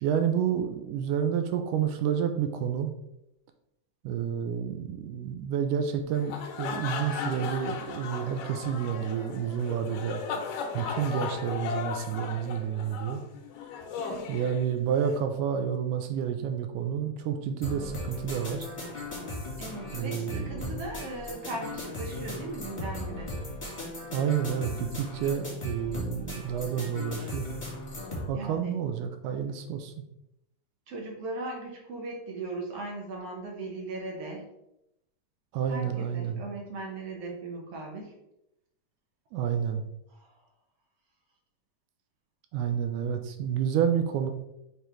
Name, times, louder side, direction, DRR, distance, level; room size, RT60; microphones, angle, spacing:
voice 1, 0.0-2.9 4.0-10.2 10.7-13.2 14.3-18.7 19.9-20.7 24.1-27.5 28.3-29.9 35.5-36.4 39.3-39.8 42.5-44.3, right 8 dB, 80° right, 6 dB, 1.9 m, -29 dB
sound 1, 6.1-15.2, left 6 dB, 75° left, 2.3 m, -36 dB
voice 2, 14.0-14.3 19.6-23.3 28.3-28.8 30.9-34.5 35.7-38.1 40.1-40.3, right 2 dB, 65° right, 0 dB, 1.6 m, -38 dB
sound 2, 17.6-28.3, left 1 dB, 15° left, 1.4 m, -37 dB
6.7 x 3.4 x 4.4 m, 0.84 s
omnidirectional pair, 4.0 m